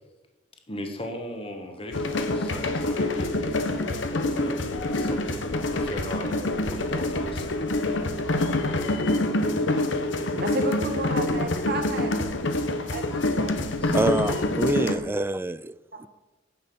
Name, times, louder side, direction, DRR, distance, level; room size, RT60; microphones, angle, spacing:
voice 1, 0.7-3.5 4.1-5.2 5.7-7.5 13.7-14.2, left 1 dB, 30° left, 4 dB, 1.4 m, -38 dB
sound 1, 1.9-15.0, left 2 dB, 75° left, 1.1 m, -26 dB
voice 2, 10.3-12.1 12.9-13.1 13.3-13.5 14.3-14.4 15.9-16.1, right 2 dB, 55° right, 5 dB, 1.6 m, -31 dB
voice 3, 13.9-16.1, right 2 dB, 10° right, 16 dB, 0.3 m, -27 dB
9.9 x 6.4 x 7.0 m, 1.1 s
head